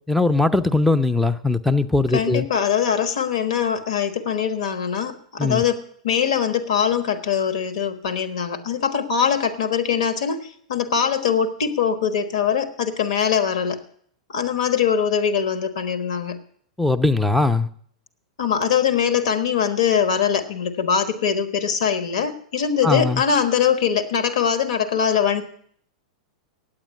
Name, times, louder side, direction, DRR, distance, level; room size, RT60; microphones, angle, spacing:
voice 1, 0.1-2.5 5.4-5.6 16.8-17.7 22.8-23.2, left 3 dB, ahead, 0.5 m, -20 dB
voice 2, 2.1-13.8 14.3-16.4 18.4-25.4, left 7 dB, 60° left, 1.3 m, -22 dB
8.8 x 8.6 x 9.4 m
figure-of-eight pair, 95°, 4 cm